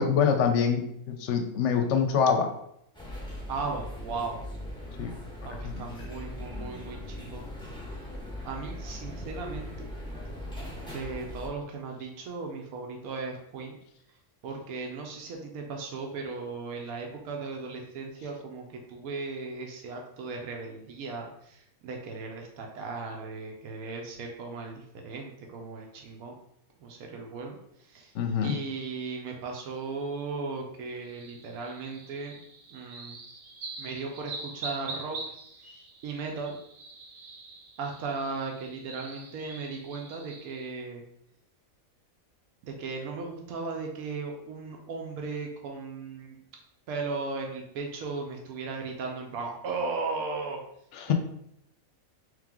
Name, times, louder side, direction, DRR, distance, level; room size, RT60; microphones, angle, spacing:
voice 1, 0.0-2.5 5.0-5.1 5.6-5.9 28.1-28.6 50.9-51.1, left 6 dB, 65° left, 6 dB, 0.8 m, -25 dB
sound 1, 2.9-11.5, left 1 dB, 5° left, 0.8 m, -39 dB
voice 2, 3.5-4.4 5.4-7.5 8.4-9.9 10.9-13.8 14.4-26.4 26.8-28.1 28.4-32.4 32.7-33.2 33.8-35.2 35.6-35.8 36.0-36.6 37.8-41.0 42.6-46.4 46.9-50.6 51.1-51.2, right 4 dB, 90° right, 1 dB, 1.1 m, -36 dB
sound 2, 31.0-40.7, right 3 dB, 60° right, 1.0 m, -44 dB
3.3 x 3.2 x 3.6 m, 0.75 s
omnidirectional pair, 1.5 m